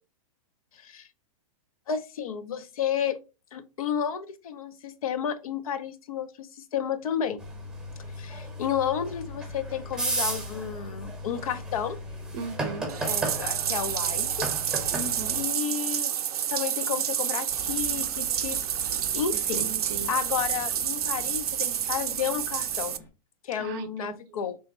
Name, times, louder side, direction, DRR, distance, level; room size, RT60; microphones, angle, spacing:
voice 1, 0.7-1.1 1.9-3.2 3.5-7.4 8.2-12.0 13.0-14.9 15.4-16.2 16.5-18.6 19.1-19.7 20.1-23.0 23.4-24.6, left 8 dB, 70° left, 0.6 m, -32 dB
sound 1, 7.4-15.4, right 1 dB, 5° right, 0.9 m, -34 dB
voice 2, 12.3-12.9 14.9-15.4 19.3-20.2 23.6-24.2, right 4 dB, 35° right, 0.6 m, -37 dB
Bathtub (filling or washing), 12.9-23.0, right 9 dB, 85° right, 0.4 m, -29 dB
sound 2, 17.5-23.1, left 3 dB, 10° left, 0.5 m, -46 dB
3.3 x 2.1 x 4.1 m
hypercardioid pair, 140°, 19 cm